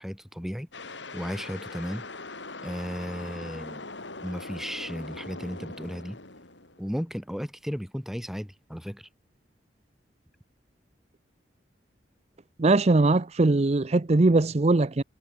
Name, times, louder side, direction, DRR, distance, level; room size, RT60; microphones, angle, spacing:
voice 1, 0.0-2.1 2.6-3.9 4.2-6.2 6.8-9.1, equal, ahead, 6.3 m, -35 dB
sound 1, 0.7-7.0, left 3 dB, 85° left, 5.1 m, -41 dB
voice 2, 12.6-15.0, right 2 dB, 35° right, 0.6 m, -21 dB
head